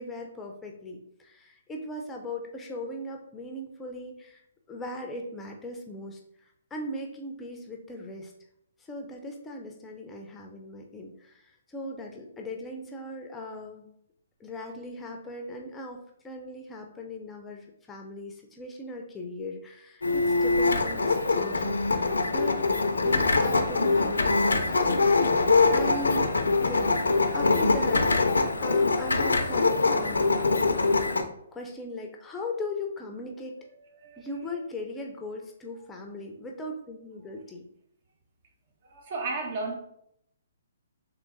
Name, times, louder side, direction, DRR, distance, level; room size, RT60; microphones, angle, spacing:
voice 1, 0.0-4.4 4.7-8.3 8.8-13.9 14.4-22.6 23.0-26.3 26.6-27.0 27.3-30.5 31.5-33.6 34.2-37.7, left 1 dB, 10° left, 2 dB, 0.5 m, -39 dB
sound 1, 20.0-31.2, left 3 dB, 85° left, 0.5 m, -23 dB
voice 2, 33.8-34.6 38.8-39.8, right 3 dB, 45° right, 3 dB, 0.8 m, -35 dB
3.8 x 3.0 x 3.7 m, 0.74 s
hypercardioid pair, 135°, 0 cm